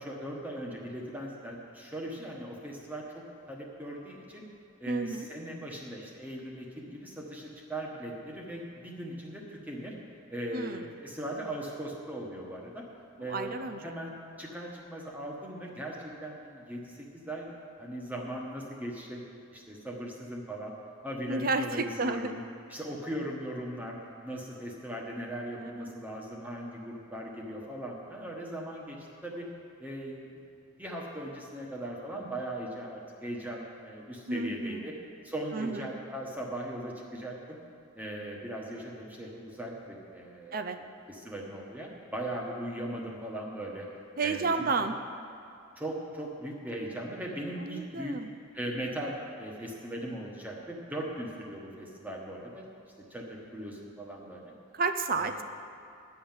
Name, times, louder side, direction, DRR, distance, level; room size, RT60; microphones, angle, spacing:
voice 1, 0.0-4.4 4.8-9.9 10.3-12.8 13.2-17.5 17.8-19.2 19.5-20.7 21.0-22.4 22.7-24.0 24.2-29.5 29.8-30.3 30.8-34.9 35.2-37.6 37.9-40.6 41.1-43.9 44.2-44.7 45.8-48.2 48.5-52.7 53.0-54.5 55.1-55.4, right 1 dB, 10° right, -2 dB, 1.2 m, -39 dB
voice 2, 4.9-5.3 10.5-10.9 13.2-13.8 21.3-22.3 25.6-25.9 34.3-34.9 35.5-35.8 40.5-40.8 44.2-45.0 47.6-48.3 54.7-55.4, right 3 dB, 40° right, 7 dB, 0.5 m, -31 dB
12.0 x 5.7 x 9.0 m, 2.6 s
head